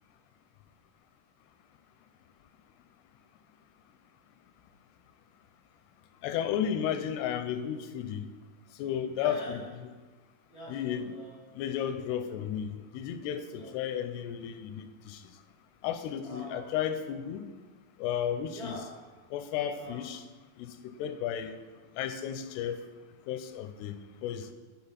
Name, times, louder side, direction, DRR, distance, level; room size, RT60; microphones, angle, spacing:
voice 1, 6.2-8.3 8.8-9.4 10.7-11.1 11.6-12.7 12.9-15.2 15.8-17.4 18.0-18.7 19.3-20.2 21.0-21.6 22.0-22.8 23.3-23.9 24.2-24.4, left 9 dB, 90° left, 9 dB, 2.6 m, -33 dB
voice 2, 9.2-9.7 10.5-11.6 12.1-12.2 13.5-13.8 15.1-15.3 16.2-16.8 18.5-19.1 19.7-20.2, right 1 dB, 65° right, -6 dB, 0.6 m, -45 dB
8.9 x 3.8 x 5.6 m, 1.3 s
omnidirectional pair, 4.6 m